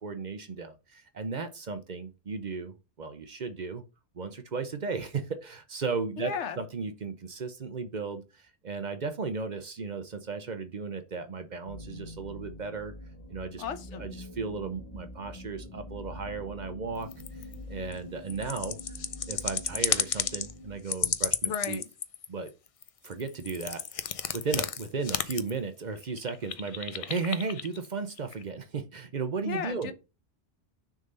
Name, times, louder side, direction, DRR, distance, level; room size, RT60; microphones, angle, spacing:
voice 1, 0.0-3.8 4.1-12.9 13.3-13.6 14.0-17.1 17.7-18.8 19.3-21.8 22.3-22.5 23.0-29.9, right 4 dB, 45° right, 0.7 m, -35 dB
voice 2, 6.2-6.6 13.6-14.1 21.4-21.8 29.5-29.9, left 7 dB, 85° left, 1.2 m, -34 dB
sound 1, 11.7-20.8, left 1 dB, 30° left, 1.0 m, -45 dB
sound 2, 17.0-17.5 17.9-18.0 18.3-20.5 20.9-22.5 22.8-25.6 26.0-27.9 28.2-28.4, left 7 dB, 50° left, 0.4 m, -32 dB
6.4 x 3.7 x 5.4 m
omnidirectional pair, 1.2 m